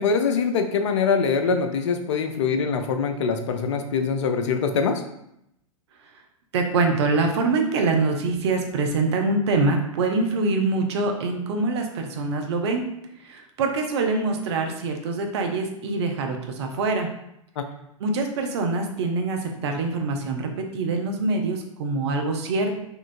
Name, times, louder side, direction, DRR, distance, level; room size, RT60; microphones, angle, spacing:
voice 1, 0.0-5.0 17.6-17.7, left 5 dB, 55° left, 6 dB, 0.4 m, -23 dB
voice 2, 6.5-12.8 13.2-17.1 18.0-22.7, right 3 dB, 50° right, 3 dB, 0.6 m, -24 dB
3.6 x 2.3 x 2.5 m, 0.79 s
figure-of-eight pair, 100°, 18 cm